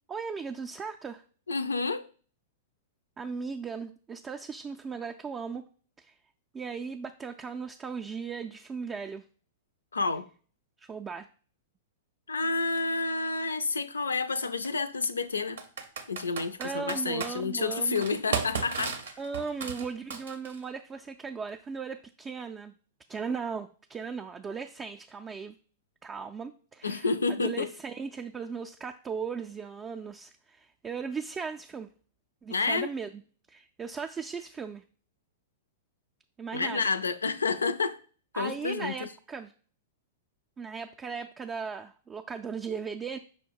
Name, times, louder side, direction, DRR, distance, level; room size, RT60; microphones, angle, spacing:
voice 1, 0.1-1.2 3.2-5.6 6.0-6.1 6.5-9.2 10.8-11.3 16.6-18.2 19.2-22.7 23.1-25.6 26.0-31.9 32.4-33.2 33.5-34.8 36.4-36.9 38.3-39.5 40.6-43.2, right 5 dB, 20° right, 0.3 m, -37 dB
voice 2, 1.5-2.0 9.9-10.3 12.3-15.6 16.1-19.0 26.8-27.7 32.5-32.9 36.5-38.0 38.3-39.1, left 4 dB, 85° left, 0.3 m, -29 dB
Computer keyboard, 12.8-12.9 14.4-14.7 15.6-17.3 18.0-20.6, right 5 dB, 70° right, 0.7 m, -35 dB
5.5 x 2.1 x 4.6 m
hypercardioid pair, 105°, 0 cm